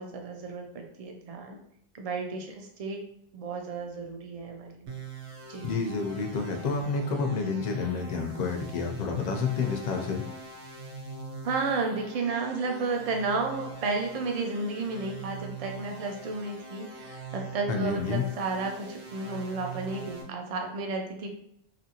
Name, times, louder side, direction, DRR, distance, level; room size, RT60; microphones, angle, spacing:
voice 1, 0.0-1.6 1.9-3.0 3.3-4.9 5.5-5.7 11.4-21.3, right 3 dB, 55° right, 2 dB, 0.4 m, -32 dB
sound 1, 4.9-20.2, right 4 dB, 90° right, 1.0 m, -42 dB
voice 2, 5.6-10.2 17.7-18.2, left 5 dB, 55° left, 3 dB, 0.4 m, -29 dB
2.8 x 2.5 x 2.8 m, 0.73 s
omnidirectional pair, 1.1 m